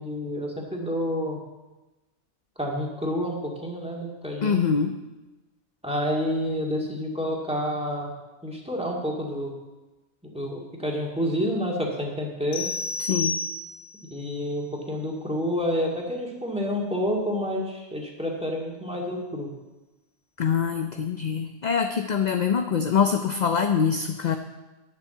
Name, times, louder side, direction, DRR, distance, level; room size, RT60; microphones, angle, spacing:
voice 1, 0.0-1.4 2.6-4.6 5.8-8.1 8.4-9.5 10.2-12.7 14.1-19.5, equal, 5° right, -2 dB, 2.1 m, -29 dB
voice 2, 4.4-5.0 13.0-13.4 20.4-24.4, left 6 dB, 50° left, 6 dB, 0.6 m, -24 dB
sound 1, 12.5-14.1, left 3 dB, 70° left, 1.8 m, -30 dB
10.5 x 7.3 x 7.8 m, 1.1 s
omnidirectional pair, 1.3 m